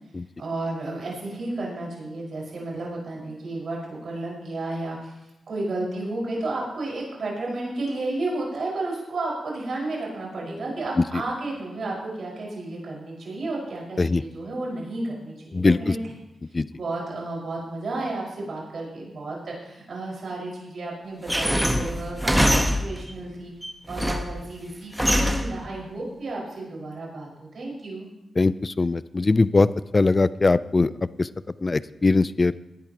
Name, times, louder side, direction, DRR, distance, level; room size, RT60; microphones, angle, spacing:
voice 1, 0.4-5.2 5.5-16.1 16.7-23.5 23.9-28.1, right 2 dB, 65° right, -3 dB, 5.3 m, -32 dB
sound 1, 21.3-23.1 23.6-24.4 25.0-25.6, equal, 5° right, 1.3 m, -23 dB
voice 2, 28.4-30.9 31.2-31.3 31.6-32.7, left 3 dB, 40° left, 17 dB, 0.5 m, -21 dB
18.5 x 10.5 x 3.0 m, 0.91 s
supercardioid pair, 45°, 0 cm